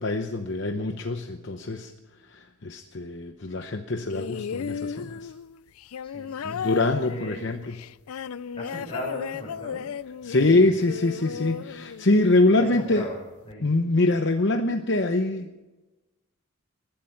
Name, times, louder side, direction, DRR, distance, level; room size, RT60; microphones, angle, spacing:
voice 1, 0.0-1.9 2.3-5.3 6.4-7.8 10.2-13.1 13.6-15.5, left 2 dB, 55° left, 6 dB, 0.8 m, -24 dB
sound 1, 4.1-12.5 13.5-13.6, left 7 dB, 80° left, 0.4 m, -35 dB
voice 2, 6.0-6.7 7.1-7.4 8.2-9.8 10.4-10.8 11.3-11.7 12.6-13.2 13.4-13.7, equal, 25° left, -1 dB, 6.3 m, -39 dB
19.5 x 13.0 x 5.7 m, 1.1 s
head